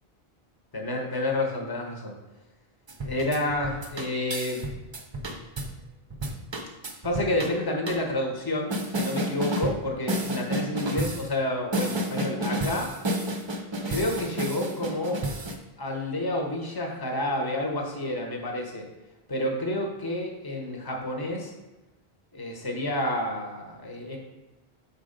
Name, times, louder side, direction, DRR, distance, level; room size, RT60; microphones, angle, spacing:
voice 1, 0.7-2.1 3.0-4.6 7.0-12.9 13.9-15.2 15.8-18.9 19.3-21.5 22.3-24.2, left 1 dB, 25° left, 1 dB, 0.9 m, -29 dB
sound 1, 2.9-5.7 6.1-7.5 7.9-8.0 8.7-9.8 10.1-11.3 11.7-15.5, right 1 dB, 35° right, 0.5 m, -30 dB
4.9 x 4.2 x 5.1 m, 1.1 s
omnidirectional pair, 1.1 m